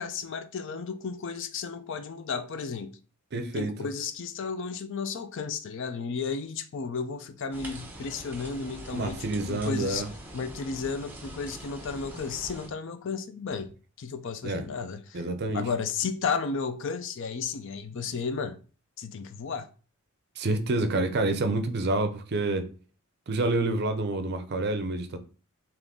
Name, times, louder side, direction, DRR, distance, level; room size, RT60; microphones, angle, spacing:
voice 1, 0.0-3.0 3.5-10.1 10.3-13.7 14.0-15.2 15.5-18.6 19.0-19.7, left 5 dB, 55° left, 0.4 m, -33 dB
voice 2, 3.3-3.7 8.9-10.1 14.4-14.6 15.1-15.6 20.4-22.7 23.3-25.2, right 2 dB, 50° right, 0.5 m, -28 dB
sound 1, 7.5-12.7, right 1 dB, 10° right, 0.7 m, -43 dB
3.8 x 3.0 x 3.5 m
head